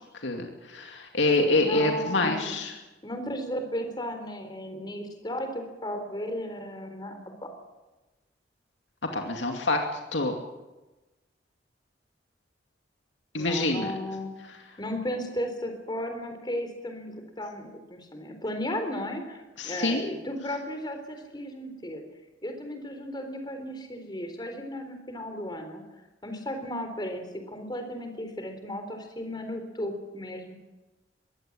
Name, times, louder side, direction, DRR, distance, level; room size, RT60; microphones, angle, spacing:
voice 1, 0.1-2.7 9.1-9.8 10.1-10.3 13.3-13.9 19.6-20.1, left 2 dB, 80° left, 2 dB, 2.4 m, -26 dB
voice 2, 1.4-2.6 3.0-7.5 13.4-14.3 14.8-22.0 22.4-25.8 26.2-30.6, left 1 dB, 25° left, 6 dB, 3.8 m, -35 dB
22.5 x 16.0 x 8.8 m, 1.1 s
head